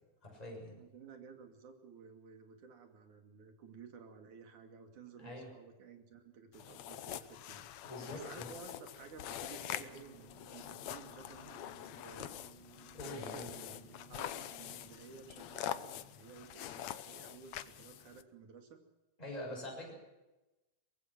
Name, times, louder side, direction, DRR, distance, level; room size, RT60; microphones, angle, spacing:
voice 1, 0.2-0.8 5.2-5.5 7.8-8.5 12.9-13.5 19.2-19.9, left 1 dB, 10° left, -1 dB, 6.8 m, -44 dB
voice 2, 0.8-7.7 8.1-12.3 13.0-18.8, right 6 dB, 80° right, 6 dB, 3.9 m, -54 dB
sound 1, 6.5-18.2, left 11 dB, 70° left, 2.0 m, -45 dB
sound 2, 9.4-15.8, right 5 dB, 55° right, 3.4 m, -60 dB
23.5 x 20.5 x 6.0 m, 1.0 s
omnidirectional pair, 3.5 m